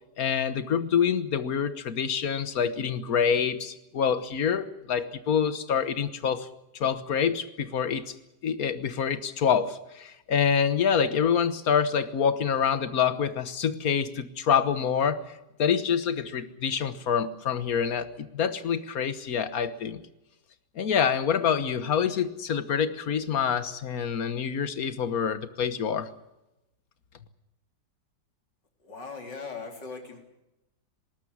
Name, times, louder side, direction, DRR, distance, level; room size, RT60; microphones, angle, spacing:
voice 1, 0.2-6.5 6.8-8.1 8.4-15.2 15.6-20.0 20.8-26.1, left 7 dB, 55° left, 13 dB, 1.6 m, -26 dB
voice 2, 28.8-30.2, left 4 dB, 80° left, 3 dB, 4.2 m, -39 dB
20.0 x 18.5 x 9.7 m, 0.92 s
omnidirectional pair, 1.9 m